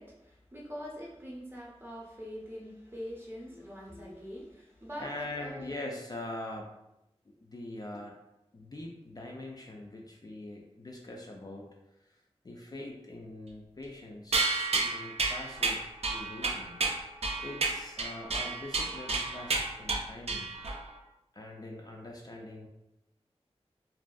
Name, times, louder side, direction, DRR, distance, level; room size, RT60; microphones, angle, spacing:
voice 1, 0.0-5.8, equal, 20° right, -3 dB, 0.6 m, -43 dB
voice 2, 3.5-4.2 5.0-6.8 7.3-8.2 8.5-11.7 12.1-14.4 14.7-16.8 17.4-20.5 21.3-22.7, left 1 dB, 35° left, -1 dB, 0.4 m, -43 dB
sound 1, 14.3-20.9, right 3 dB, 70° right, 0.4 m, -31 dB
2.5 x 2.3 x 2.3 m, 0.89 s
wide cardioid pair, 70°, 11 cm